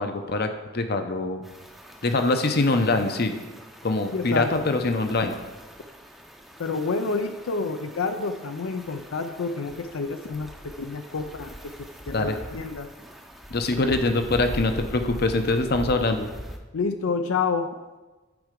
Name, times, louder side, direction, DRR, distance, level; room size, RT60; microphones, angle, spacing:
voice 1, 0.0-1.4 2.0-3.3 3.8-5.3 12.1-12.4 13.5-16.3, left 2 dB, 50° left, 7 dB, 0.7 m, -24 dB
sound 1, 1.4-16.6, equal, ahead, 0.6 m, -42 dB
voice 2, 4.1-4.7 5.2-5.3 6.6-10.5 10.8-11.5 12.1-12.9 16.7-17.7, left 4 dB, 80° left, 7 dB, 0.5 m, -28 dB
9.4 x 4.7 x 5.2 m, 1.2 s
head